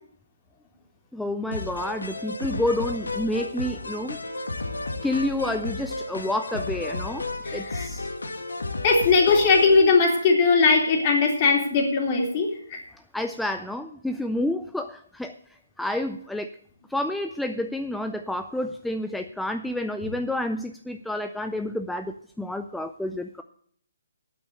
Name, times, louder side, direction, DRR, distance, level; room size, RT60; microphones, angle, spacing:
voice 1, 1.1-4.2 5.0-7.2 7.5-8.1 13.1-15.4 15.8-16.5 16.9-23.4, left 1 dB, ahead, 7 dB, 0.4 m, -29 dB
sound 1, 1.5-9.8, left 2 dB, 85° left, 1.9 m, -33 dB
voice 2, 7.4-7.9 8.8-12.8, left 4 dB, 30° left, 2 dB, 3.1 m, -20 dB
9.0 x 8.1 x 8.5 m, 0.63 s
hypercardioid pair, 155°, 0 cm